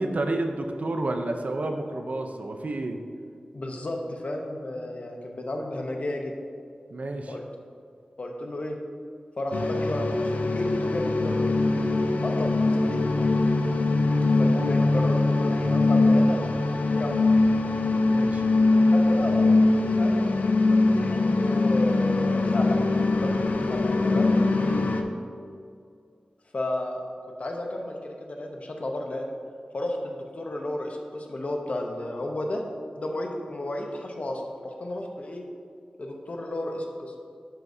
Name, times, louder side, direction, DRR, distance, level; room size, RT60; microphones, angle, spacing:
voice 1, 0.0-3.0 6.9-7.3 18.0-18.4 24.6-24.9, right 2 dB, 60° right, 5 dB, 0.6 m, -30 dB
voice 2, 3.5-6.3 7.3-7.4 8.2-8.8 9.4-11.8 12.2-13.3 14.4-16.5 17.0-17.4 18.7-19.5 20.0-22.8 23.2-24.3 26.5-27.0 27.4-29.3 29.7-32.6 32.9-35.4 36.0-37.1, left 1 dB, 55° left, 2 dB, 0.9 m, -33 dB
sound 1, 9.5-25.0, left 2 dB, 80° left, 0.5 m, -22 dB
11.5 x 4.7 x 2.7 m, 2.3 s
wide cardioid pair, 70°, 3 cm